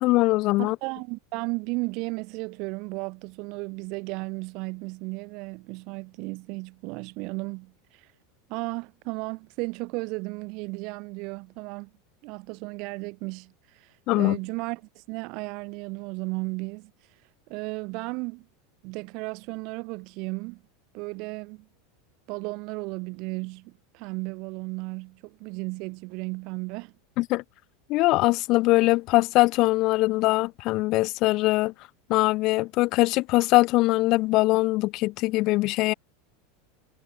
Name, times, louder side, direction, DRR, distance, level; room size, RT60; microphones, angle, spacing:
voice 1, 0.0-0.8 14.1-14.4 27.2-27.4 27.9-31.7 32.1-35.9, left 20 dB, 40° left, 1.8 m, -22 dB
voice 2, 0.6-8.1 8.5-11.9 12.2-16.9 17.5-18.5 18.8-20.6 20.9-21.7 22.3-26.9, right 28 dB, 45° right, 5.2 m, -34 dB
supercardioid pair, 165°, 0 cm